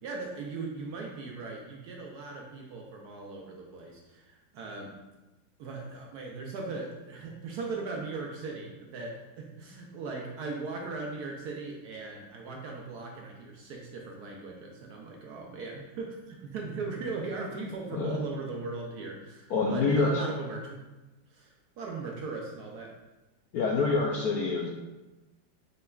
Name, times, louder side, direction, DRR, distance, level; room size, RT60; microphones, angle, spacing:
voice 1, 0.0-4.9 5.6-20.8 21.3-22.9, right 3 dB, 70° right, 0 dB, 1.0 m, -38 dB
voice 2, 19.5-20.1 23.5-24.7, left 4 dB, 75° left, -1 dB, 0.9 m, -26 dB
6.6 x 3.2 x 2.3 m, 1.1 s
omnidirectional pair, 2.0 m